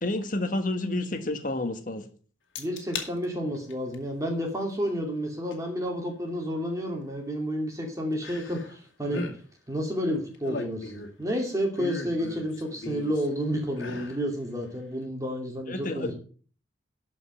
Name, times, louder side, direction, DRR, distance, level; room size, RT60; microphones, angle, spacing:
voice 1, 0.0-2.0 15.7-16.1, left 2 dB, 45° left, 7 dB, 1.5 m, -29 dB
sound 1, 2.5-3.1 3.5-3.9 5.5-5.6 8.2-8.8 9.0-9.4 10.1-11.2 11.7-13.3 13.7-14.2 14.6-14.7, left 3 dB, 80° left, 2.1 m, -37 dB
voice 2, 2.6-9.2 9.7-10.9 11.2-16.1, equal, 15° right, 2 dB, 2.5 m, -30 dB
12.5 x 5.3 x 6.6 m, 0.42 s
head